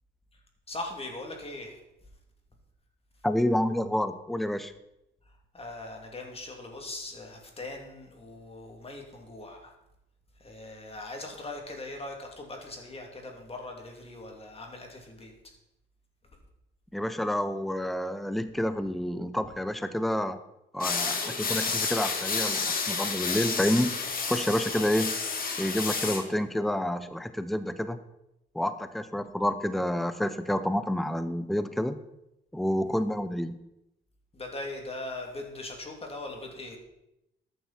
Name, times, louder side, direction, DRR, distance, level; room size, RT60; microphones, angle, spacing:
voice 1, 0.7-1.8 5.5-9.7 10.4-15.3 24.7-24.8 32.8-33.0 34.3-36.8, left 2 dB, 30° left, 1 dB, 3.0 m, -40 dB
voice 2, 3.2-4.7 16.9-20.4 20.7-23.9 24.3-25.1 25.6-28.0 28.5-32.0 32.5-33.6, left 1 dB, ahead, 11 dB, 0.7 m, -29 dB
sound 1, 20.8-26.2, left 4 dB, 45° left, 2.2 m, -30 dB
13.5 x 9.5 x 4.4 m, 0.87 s
cardioid pair, 90°, 20 cm